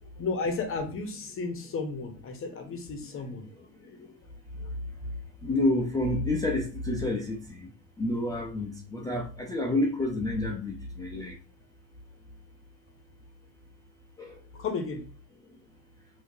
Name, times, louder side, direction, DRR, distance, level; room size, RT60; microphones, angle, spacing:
voice 1, 0.2-4.1 4.6-4.7 14.5-15.0, left 4 dB, 25° left, 0.8 m, -34 dB
voice 2, 5.4-7.7 8.0-11.4 14.2-14.3, left 2 dB, 10° left, 0.3 m, -29 dB
3.5 x 2.7 x 2.6 m
supercardioid pair, 100°, 48 cm